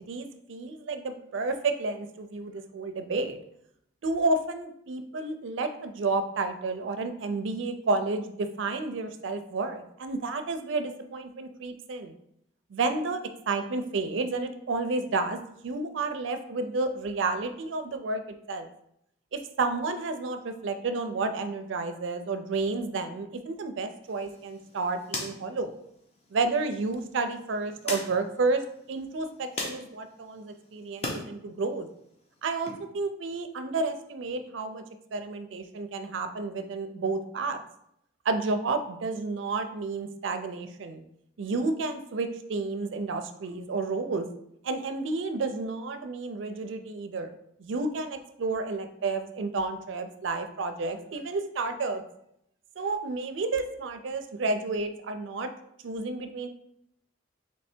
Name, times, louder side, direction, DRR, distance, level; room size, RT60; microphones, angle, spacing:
voice 1, 0.0-3.4 4.0-12.1 12.7-18.2 18.5-18.7 19.3-25.7 26.3-28.6 28.9-31.9 32.4-34.8 35.1-37.6 38.2-41.0 41.4-44.3 44.6-47.3 47.6-52.0 52.8-55.5 55.8-56.5, right 3 dB, 70° right, 8 dB, 0.4 m, -31 dB
sound 1, 24.0-31.2 31.6-32.7, left 2 dB, 30° left, 0.7 m, -41 dB
3.3 x 3.1 x 4.3 m, 0.76 s
head